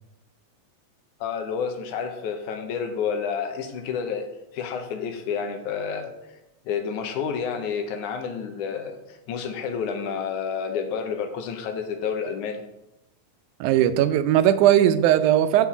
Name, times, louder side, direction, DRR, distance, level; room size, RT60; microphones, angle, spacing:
voice 1, 1.2-6.1 6.7-12.6, left 6 dB, 80° left, 6 dB, 2.3 m, -30 dB
voice 2, 13.6-15.7, right 11 dB, 80° right, 10 dB, 2.0 m, -18 dB
6.2 x 5.9 x 7.2 m, 0.91 s
omnidirectional pair, 3.6 m